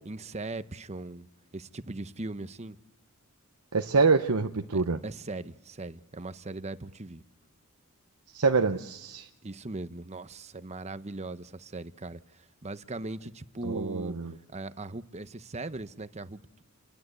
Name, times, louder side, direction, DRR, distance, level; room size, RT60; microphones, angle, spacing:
voice 1, 0.1-1.3 1.5-2.8 4.7-7.2 9.4-16.6, right 2 dB, 30° right, 0.8 m, -39 dB
voice 2, 3.7-5.0 8.3-9.3 13.6-14.3, right 4 dB, 80° right, 0.9 m, -26 dB
29.0 x 20.5 x 8.2 m
head